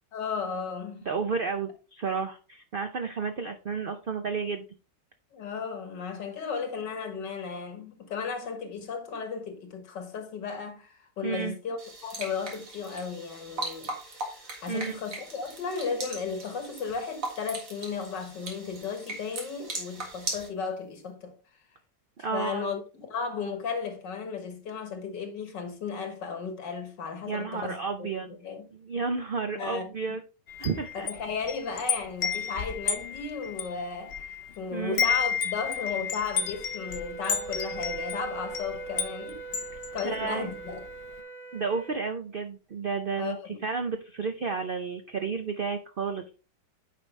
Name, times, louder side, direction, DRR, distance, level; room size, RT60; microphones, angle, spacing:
voice 1, 0.1-1.1 5.3-21.4 22.3-28.7 29.5-29.9 30.9-39.4 39.9-40.8 43.2-43.6, left 5 dB, 85° left, 2.1 m, -35 dB
voice 2, 1.1-4.6 11.2-11.6 14.7-15.0 22.2-22.7 27.3-28.4 28.7-30.2 30.6-31.1 34.7-35.1 40.0-40.5 41.5-46.2, right 5 dB, 85° right, 0.4 m, -32 dB
sound 1, 11.8-20.5, right 2 dB, 50° right, 2.1 m, -39 dB
Wind chime, 30.5-34.6 34.8-40.8, left 7 dB, 60° left, 0.6 m, -32 dB
Wind instrument woodwind instrument, 36.3-42.0, right 5 dB, 5° left, 2.2 m, -41 dB
9.5 x 5.1 x 3.2 m
omnidirectional pair, 1.9 m